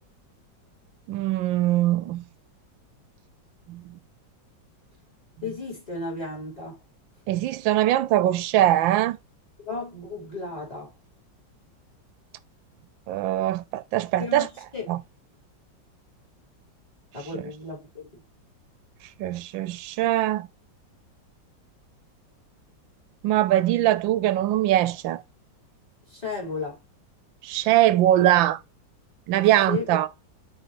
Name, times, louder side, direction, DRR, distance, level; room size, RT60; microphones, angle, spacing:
voice 1, 1.1-2.2 3.7-4.0 7.3-9.2 13.1-14.5 14.9-15.0 19.2-20.5 23.2-25.2 27.4-28.6 29.3-30.1, right 13 dB, 90° right, 1.3 m, -22 dB
voice 2, 5.4-6.8 9.6-10.9 14.2-14.5 14.7-14.8 17.1-18.2 26.1-26.8 27.9-28.0 29.3-30.0, left 4 dB, 20° left, 4.3 m, -34 dB
8.0 x 4.1 x 3.1 m
omnidirectional pair, 2.0 m